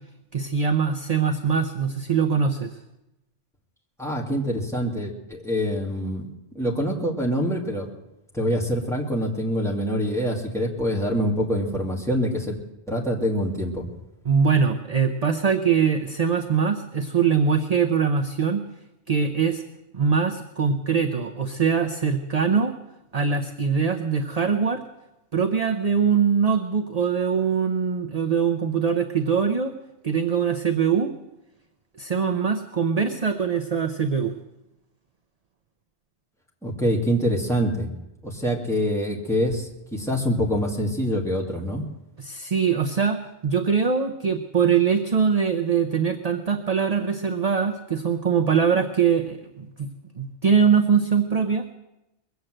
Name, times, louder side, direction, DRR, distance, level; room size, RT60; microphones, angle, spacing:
voice 1, 0.3-2.8 14.2-18.6 19.1-19.6 19.9-22.7 23.1-24.8 25.3-29.7 30.0-31.1 32.0-34.3 42.2-49.9 50.2-51.7, right 6 dB, 40° right, 6 dB, 0.8 m, -22 dB
voice 2, 4.0-6.3 6.5-7.9 8.3-12.6 12.9-13.9 36.6-37.9 38.2-41.8, equal, ahead, -2 dB, 2.4 m, -25 dB
21.5 x 8.2 x 7.7 m, 0.94 s
omnidirectional pair, 1.1 m